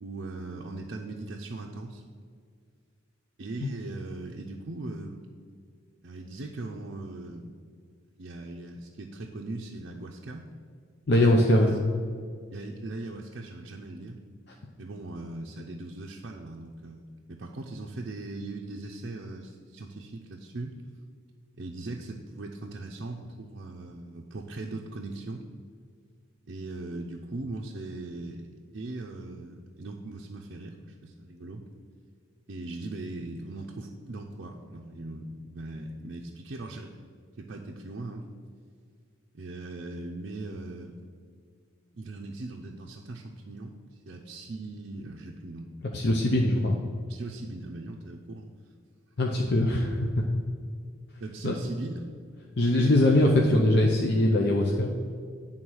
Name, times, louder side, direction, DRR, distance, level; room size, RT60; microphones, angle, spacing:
voice 1, 0.0-2.0 3.4-5.3 6.0-7.6 8.2-10.5 12.5-14.2 14.8-20.7 21.6-25.4 26.5-31.6 32.5-36.9 37.4-38.3 39.3-40.9 41.9-45.7 47.1-48.5 51.2-52.1 52.7-53.3, right 2 dB, 55° right, -1 dB, 0.5 m, -39 dB
voice 2, 11.1-11.7 45.9-46.8 49.2-50.2 51.4-51.5 52.6-54.9, left 1 dB, 55° left, 0 dB, 0.6 m, -22 dB
9.1 x 3.8 x 6.2 m, 2.1 s
head